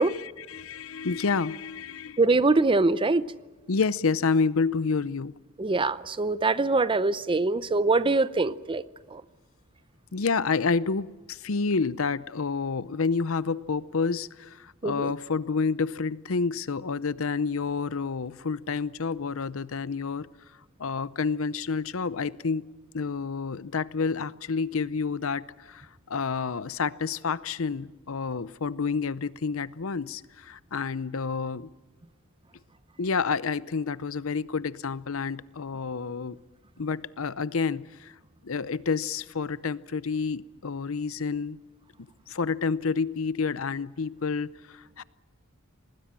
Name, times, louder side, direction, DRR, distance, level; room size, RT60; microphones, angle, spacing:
voice 1, 0.0-2.2 3.7-5.3 10.1-20.3 20.8-22.7 22.9-31.7 33.0-36.4 36.8-38.1 38.4-41.6 42.3-45.0, left 5 dB, 70° left, 17 dB, 0.7 m, -29 dB
voice 2, 2.2-3.2 5.6-8.8 9.1-9.2 14.8-15.1, right 3 dB, 25° right, 16 dB, 0.6 m, -23 dB
26.0 x 20.0 x 7.5 m, 1.2 s
head